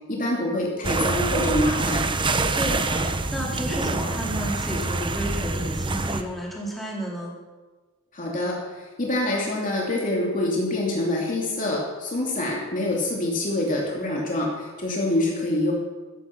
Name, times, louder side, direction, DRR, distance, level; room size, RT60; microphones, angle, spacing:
voice 1, 0.1-2.1 8.1-15.7, left 1 dB, 35° left, -2 dB, 2.7 m, -26 dB
sound 1, 0.8-6.2, right 2 dB, 20° right, 0.9 m, -25 dB
voice 2, 2.5-7.3, equal, ahead, -5 dB, 4.1 m, -32 dB
15.5 x 14.0 x 6.0 m, 1.3 s
head